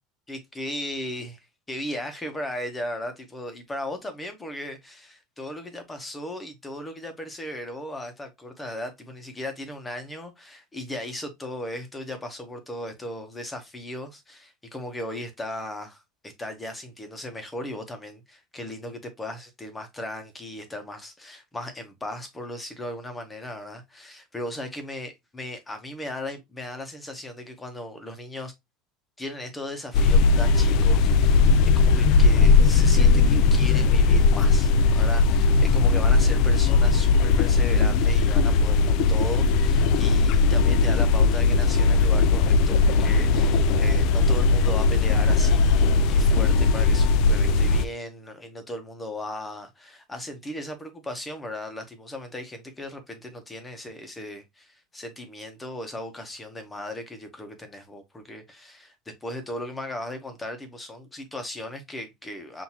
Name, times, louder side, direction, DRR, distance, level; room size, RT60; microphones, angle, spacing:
voice 1, 0.3-28.5 29.2-58.9 59.2-62.6, left 1 dB, 10° left, 0.9 m, -37 dB
sound 1, 29.9-47.9, left 4 dB, 55° left, 0.3 m, -19 dB
5.6 x 2.6 x 2.9 m
cardioid pair, 145°, 0 cm